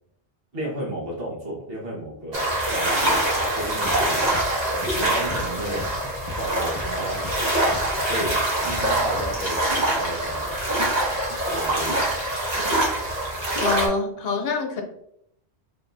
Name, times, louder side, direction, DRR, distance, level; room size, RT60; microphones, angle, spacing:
voice 1, 0.5-3.2 3.5-4.2 4.9-5.9 6.3-7.2 8.1-10.6 11.3-12.1, right 1 dB, 60° right, -3 dB, 1.4 m, -33 dB
sound 1, 2.3-13.9, right 1 dB, 40° right, 1.1 m, -24 dB
sound 2, 3.8-6.4 6.7-9.6, left 4 dB, 40° left, 0.3 m, -38 dB
voice 2, 13.6-14.8, left 4 dB, 65° left, 3 dB, 0.9 m, -25 dB
3.6 x 3.5 x 2.6 m, 0.73 s
omnidirectional pair, 1.1 m